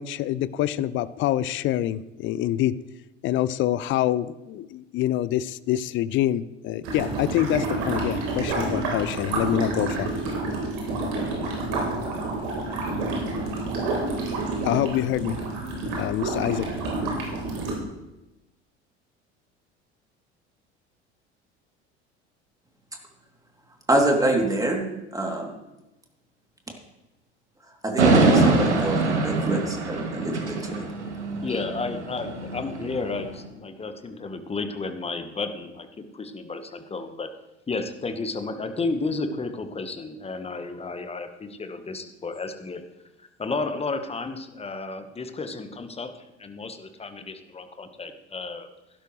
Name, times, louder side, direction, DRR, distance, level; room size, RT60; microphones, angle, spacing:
voice 1, 0.0-2.7 3.2-10.1 14.7-15.4 16.0-16.7, left 13 dB, 35° left, 18 dB, 0.5 m, -26 dB
sound 1, 6.8-17.7, right 2 dB, 60° right, 3.9 m, -29 dB
voice 2, 23.9-24.8 25.1-25.5 27.8-30.9, right 1 dB, 10° right, 1 dB, 2.9 m, -25 dB
sound 2, 28.0-33.3, right 3 dB, 75° right, 1.8 m, -24 dB
voice 3, 31.4-37.3 37.7-42.8 43.4-48.7, left 3 dB, 15° left, 8 dB, 1.3 m, -32 dB
16.0 x 12.0 x 3.2 m, 0.97 s
figure-of-eight pair, 65°, 34 cm